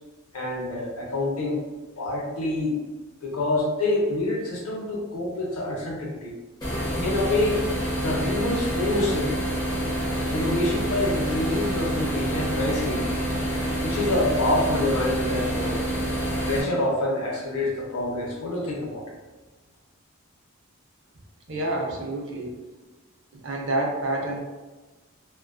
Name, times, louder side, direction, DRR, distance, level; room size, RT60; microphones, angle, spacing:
voice 1, 0.3-1.6 2.0-2.8 3.2-6.3 7.0-7.6 8.0-9.3 10.3-13.0 13.8-15.8 16.4-19.2, left 2 dB, 90° left, -1 dB, 0.6 m, -26 dB
sound 1, 6.6-16.6, equal, 20° left, 0.6 m, -27 dB
voice 2, 21.5-22.5 23.3-24.4, right 1 dB, 60° right, 0 dB, 0.5 m, -28 dB
2.4 x 2.2 x 2.3 m, 1.2 s
head